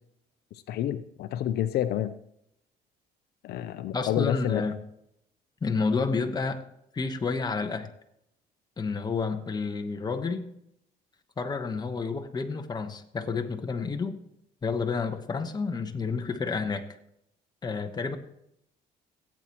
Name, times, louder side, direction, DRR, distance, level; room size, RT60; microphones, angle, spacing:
voice 1, 0.7-2.1 3.4-4.7, left 11 dB, 70° left, 11 dB, 0.6 m, -29 dB
voice 2, 3.9-4.8 5.6-6.6 6.9-7.9 8.8-10.5 11.4-14.2 14.6-16.9 17.6-18.2, left 4 dB, 25° left, 6 dB, 1.1 m, -30 dB
16.5 x 8.5 x 3.0 m, 0.77 s
cardioid pair, 110°, 17 cm